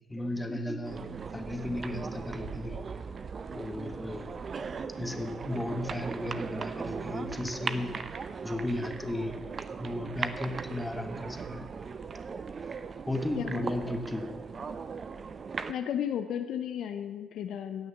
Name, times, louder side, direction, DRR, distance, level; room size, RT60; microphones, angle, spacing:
voice 1, 0.1-1.0 1.3-2.8 3.5-4.3 5.0-7.9 8.4-9.4 9.8-11.7 13.1-14.4, left 1 dB, 10° left, 6 dB, 1.7 m, -35 dB
sound 1, 0.8-15.7, right 5 dB, 45° right, 0.7 m, -38 dB
voice 2, 13.4-13.7 15.7-17.9, left 9 dB, 65° left, 8 dB, 0.6 m, -34 dB
16.5 x 6.4 x 7.1 m, 1.4 s
hypercardioid pair, 45°, 0 cm